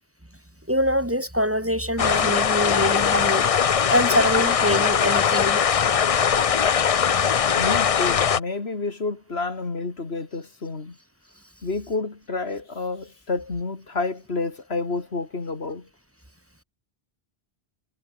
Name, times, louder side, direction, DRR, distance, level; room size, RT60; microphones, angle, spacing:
voice 1, 0.7-3.5 3.9-5.6 6.9-7.1, equal, 15° right, 2.8 m, -24 dB
sound 1, 2.0-8.4, left 7 dB, 45° left, 0.5 m, -21 dB
sound 2, 2.8-8.8, right 3 dB, 70° right, 3.3 m, -44 dB
voice 2, 7.6-11.0 11.6-15.9, left 3 dB, 80° left, 2.7 m, -29 dB
omnidirectional pair, 1.1 m